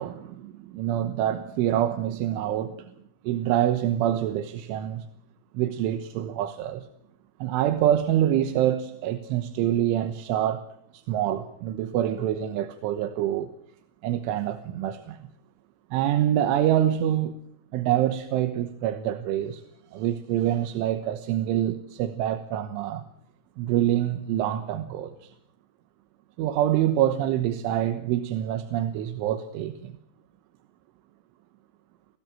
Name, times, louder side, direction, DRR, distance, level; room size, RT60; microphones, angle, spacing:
voice 1, 0.0-2.9 3.2-5.0 5.5-6.9 7.4-10.7 10.9-13.5 14.0-15.2 15.9-17.4 17.7-19.6 19.9-23.0 23.6-25.3 26.4-29.9, right 11 dB, 75° right, 3.5 m, -26 dB
26.0 x 16.5 x 7.5 m
omnidirectional pair, 6.0 m